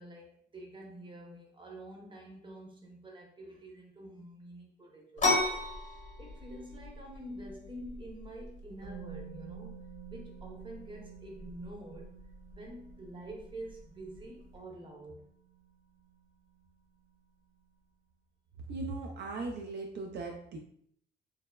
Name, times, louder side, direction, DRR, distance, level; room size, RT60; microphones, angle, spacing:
voice 1, 0.0-5.3 5.8-9.8 10.1-12.1 12.5-15.2, right 1 dB, 25° right, 0 dB, 0.7 m, -47 dB
sound 1, 5.2-14.6, left 2 dB, 40° left, 0.8 m, -37 dB
Musical instrument, 8.8-16.7 17.0-17.2, right 9 dB, 90° right, 1.0 m, -52 dB
voice 2, 18.7-20.6, right 3 dB, 60° right, 2 dB, 0.4 m, -38 dB
3.2 x 2.0 x 2.2 m, 0.67 s
cardioid pair, 90°, 20 cm